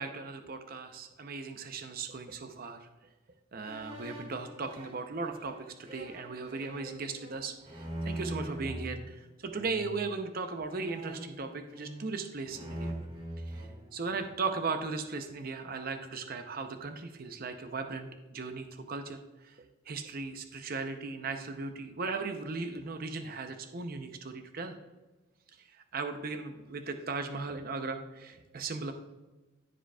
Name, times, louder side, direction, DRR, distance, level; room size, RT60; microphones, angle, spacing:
voice 1, 0.0-2.9 3.5-13.0 13.4-24.8 25.5-28.9, right 4 dB, 45° right, 6 dB, 0.6 m, -37 dB
sound 1, 3.6-8.9 9.5-10.0 10.7-12.1 12.5-14.4, right 1 dB, 30° right, 1.8 m, -42 dB
14.0 x 5.0 x 2.3 m, 1.1 s
head